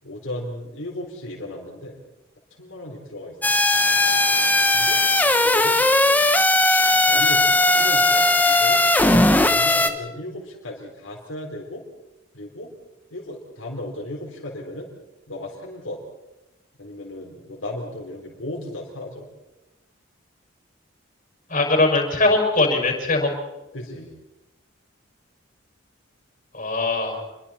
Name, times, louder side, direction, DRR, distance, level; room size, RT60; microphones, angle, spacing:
voice 1, 0.0-2.0 2.5-3.4 4.7-5.0 5.4-5.8 7.0-8.8 9.3-11.8 12.3-12.7 13.1-14.9 15.3-16.0 16.8-19.3 23.7-24.1, left 1 dB, 75° left, -2 dB, 4.1 m, -35 dB
sound 1, 3.4-9.9, left 2 dB, 10° left, 1.1 m, -18 dB
voice 2, 21.5-23.3 26.5-27.2, left 2 dB, 40° left, 2 dB, 6.2 m, -20 dB
28.5 x 23.0 x 4.4 m, 1.0 s
head